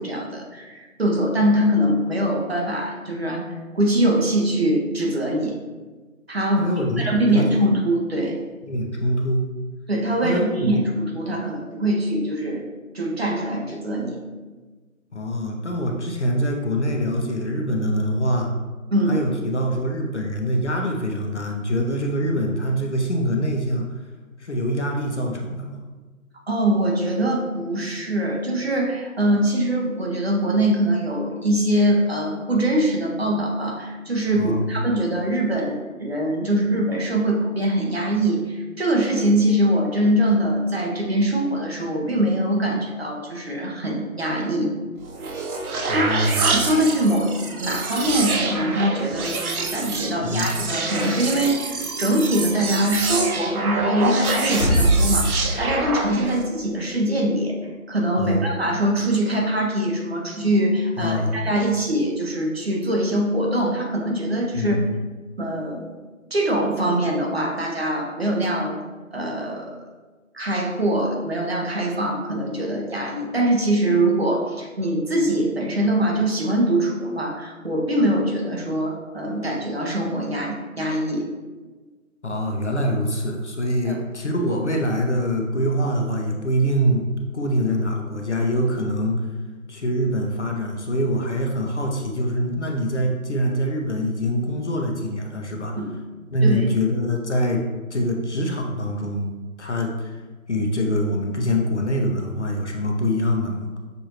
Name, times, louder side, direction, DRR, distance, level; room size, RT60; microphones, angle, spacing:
voice 1, 0.0-3.4 3.7-5.6 6.3-6.7 7.0-8.4 9.9-12.6 12.9-14.2 18.9-19.2 26.5-44.7 45.9-47.3 47.6-49.4 49.7-57.5 57.9-64.8 65.4-66.0 66.3-68.8 69.1-69.7 70.3-81.3 83.8-84.0 95.8-95.9 96.4-96.7, right 1 dB, 45° right, -1 dB, 0.8 m, -23 dB
voice 2, 6.6-7.7 8.6-9.5 10.2-10.8 15.1-18.5 19.1-23.9 24.4-25.8 34.3-34.7 45.8-46.4 50.2-50.5 58.2-58.4 61.0-61.4 64.5-64.8 82.2-87.0 87.3-89.2 89.7-95.7 96.3-99.3 99.6-100.2 100.5-103.7, equal, 55° left, 1 dB, 0.6 m, -24 dB
sound 1, 45.0-56.5, right 4 dB, 85° right, 0.8 m, -27 dB
sound 2, 54.3-56.4, right 1 dB, 15° left, 1.2 m, -22 dB
6.5 x 2.6 x 2.9 m, 1.3 s
figure-of-eight pair, 175°, 42 cm